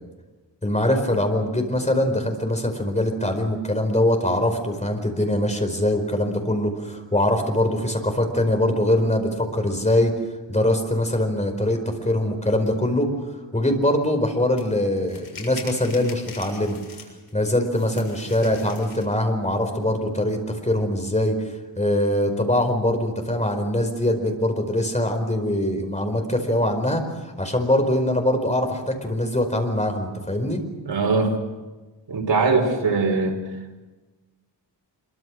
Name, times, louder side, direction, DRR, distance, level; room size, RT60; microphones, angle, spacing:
voice 1, 0.6-10.1 10.5-13.1 13.5-16.8 17.3-30.6, left 1 dB, 15° left, 4 dB, 4.8 m, -23 dB
sound 1, 14.6-14.7 15.1-17.3 17.7-19.1, left 3 dB, 55° left, 6.9 m, -42 dB
voice 2, 30.8-31.4 32.1-33.4, right 3 dB, 80° right, 2 dB, 5.0 m, -21 dB
26.5 x 24.0 x 6.4 m, 1.2 s
wide cardioid pair, 115°, 43 cm